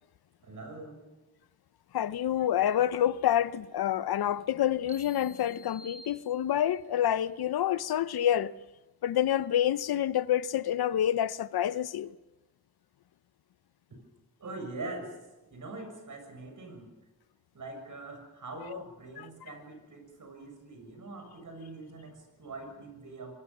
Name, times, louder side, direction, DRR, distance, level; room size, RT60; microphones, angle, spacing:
voice 1, 0.4-1.1 14.4-15.2 15.5-16.9 17.5-23.3, right 2 dB, 50° right, 7.1 m, -43 dB
voice 2, 1.9-8.5 9.0-12.1 18.7-18.8 19.2-19.3, left 11 dB, 70° left, 0.8 m, -28 dB
sound 1, 4.9-6.8, equal, 15° right, 4.5 m, -51 dB
24.5 x 20.5 x 7.3 m
wide cardioid pair, 110°, 38 cm